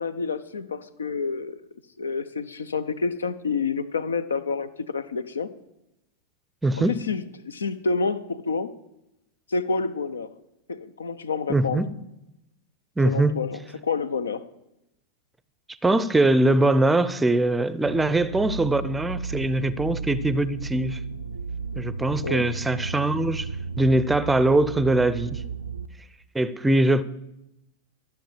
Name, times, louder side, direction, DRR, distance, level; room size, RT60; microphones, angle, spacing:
voice 1, 0.0-1.6 2.0-5.5 6.8-8.7 9.5-10.3 10.7-11.8 13.0-14.4 22.2-22.4, left 4 dB, 70° left, 0.6 m, -28 dB
voice 2, 6.6-6.9 11.5-11.9 13.0-13.4 15.8-21.0 21.8-23.5 23.8-25.4 26.3-27.0, right 2 dB, 10° right, 0.6 m, -22 dB
sound 1, 17.9-25.9, right 5 dB, 80° right, 0.5 m, -33 dB
13.0 x 7.2 x 7.4 m
figure-of-eight pair, 90°, 0 cm